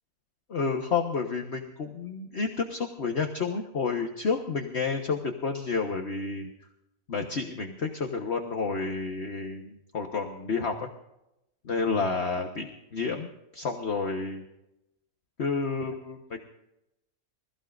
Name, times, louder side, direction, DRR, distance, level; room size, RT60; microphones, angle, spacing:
voice 1, 0.5-6.5 7.1-10.9 11.6-14.4 15.4-16.4, left 4 dB, 45° left, 3 dB, 1.4 m, -30 dB
26.5 x 15.5 x 2.6 m, 0.86 s
omnidirectional pair, 1.7 m